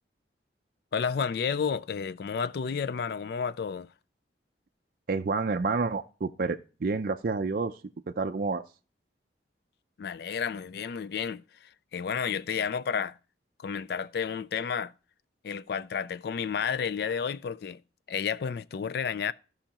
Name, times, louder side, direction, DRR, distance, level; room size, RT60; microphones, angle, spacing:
voice 1, 0.9-3.9 10.0-13.2 13.6-14.9 15.4-17.8 18.1-19.3, left 6 dB, 60° left, 0.3 m, -31 dB
voice 2, 5.1-7.8 8.1-8.6, right 4 dB, 50° right, 0.4 m, -29 dB
15.0 x 5.6 x 2.9 m
head